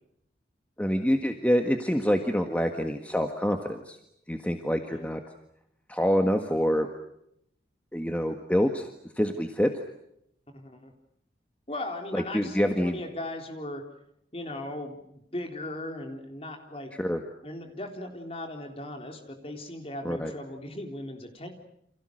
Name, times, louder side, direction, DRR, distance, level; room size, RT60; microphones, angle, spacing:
voice 1, 0.8-4.0 4.3-5.2 5.9-6.9 7.9-8.9 9.1-9.7 12.1-13.0 17.0-17.2 20.0-20.3, equal, 10° left, 5 dB, 1.6 m, -26 dB
voice 2, 10.5-10.9 11.7-13.8 14.3-16.9 17.4-21.5, left 1 dB, 35° left, 4 dB, 3.8 m, -38 dB
29.5 x 27.5 x 6.5 m, 0.75 s
head